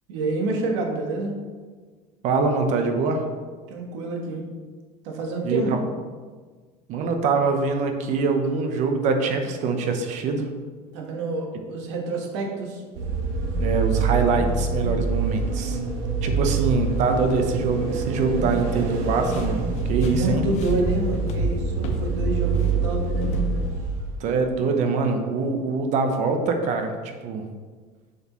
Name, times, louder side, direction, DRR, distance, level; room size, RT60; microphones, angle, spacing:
voice 1, 0.1-1.4 3.7-4.5 5.0-5.8 10.9-12.8 16.3-16.5 17.1-17.3 20.0-23.5, right 2 dB, 85° right, 1 dB, 1.4 m, -28 dB
voice 2, 2.2-3.2 5.4-5.8 6.9-10.5 13.6-15.8 16.2-19.6 19.9-20.4 24.2-27.4, right 4 dB, 55° right, 5 dB, 0.9 m, -24 dB
sound 1, 12.9-24.2, right 4 dB, 70° right, 1.3 m, -25 dB
sound 2, 19.2-22.1 22.4-23.5, left 4 dB, 50° left, 0.8 m, -37 dB
7.0 x 6.4 x 3.1 m, 1.5 s
cardioid pair, 125°, 15 cm